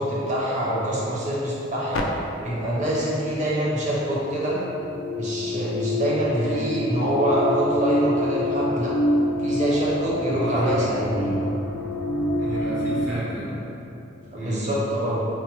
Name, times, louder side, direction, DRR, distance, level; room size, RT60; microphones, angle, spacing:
voice 1, 0.0-2.1 2.4-4.6 5.1-8.9 9.4-11.4 14.3-15.2, right 1 dB, 35° right, -6 dB, 0.7 m, -25 dB
sound 1, 1.9-2.0 3.9-13.1, left 1 dB, 85° left, 0.3 m, -26 dB
voice 2, 6.3-6.7 10.3-10.8 12.4-13.5 14.3-14.6, equal, 75° right, -8 dB, 0.9 m, -30 dB
4.2 x 2.1 x 3.0 m, 2.9 s
head